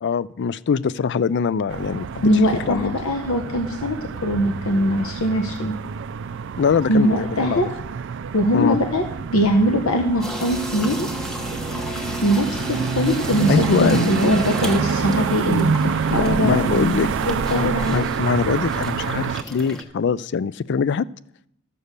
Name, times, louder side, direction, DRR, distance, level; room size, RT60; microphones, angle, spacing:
voice 1, 0.0-2.3 2.7-2.9 6.6-7.7 8.5-8.8 13.5-14.1 16.1-17.1 17.5-21.1, left 6 dB, 55° left, 19 dB, 0.4 m, -22 dB
sound 1, 1.7-19.4, right 5 dB, 60° right, 0.4 m, -27 dB
voice 2, 2.2-4.0 4.2-5.8 6.9-7.7 8.3-9.0 9.3-11.1 12.2-18.0, equal, 85° left, 4 dB, 1.0 m, -21 dB
sound 2, 10.2-19.8, equal, 5° left, 1.2 m, -33 dB
13.0 x 7.0 x 6.6 m, 0.76 s
head